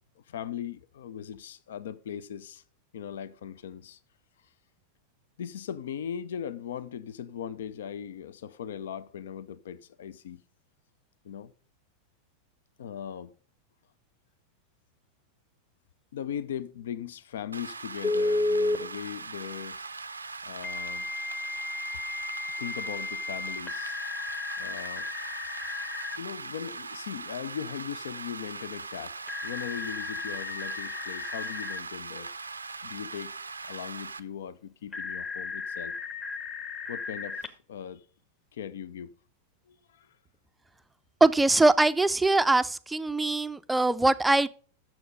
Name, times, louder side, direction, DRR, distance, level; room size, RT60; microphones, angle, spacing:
voice 1, 0.3-2.6 2.9-4.0 5.4-10.4 11.2-11.5 12.8-13.3 16.1-19.8 20.4-21.1 22.6-24.0 24.6-25.1 26.2-29.1 29.4-32.3 32.8-33.3 33.7-36.0 36.9-38.0 38.5-39.1 39.7-40.1, left 9 dB, 60° left, 0.5 m, -39 dB
Rain, 17.5-34.2, right 4 dB, 80° right, 0.5 m, -40 dB
Telephone, 18.0-18.8 20.6-26.2 29.3-31.8 34.9-37.5, left 3 dB, 20° left, 1.0 m, -33 dB
voice 2, 41.2-44.5, right 2 dB, 5° right, 0.5 m, -22 dB
7.9 x 7.0 x 5.1 m
figure-of-eight pair, 90°, 0 cm